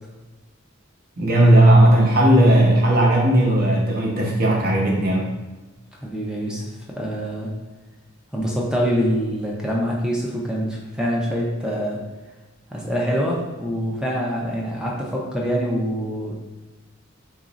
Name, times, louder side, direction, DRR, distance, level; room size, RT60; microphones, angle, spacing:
voice 1, 1.2-5.3, right 1 dB, 45° right, -2 dB, 0.8 m, -16 dB
voice 2, 6.0-7.5 8.3-12.0 12.7-16.3, equal, 5° right, -3 dB, 0.5 m, -25 dB
3.0 x 2.5 x 3.9 m, 1.2 s
head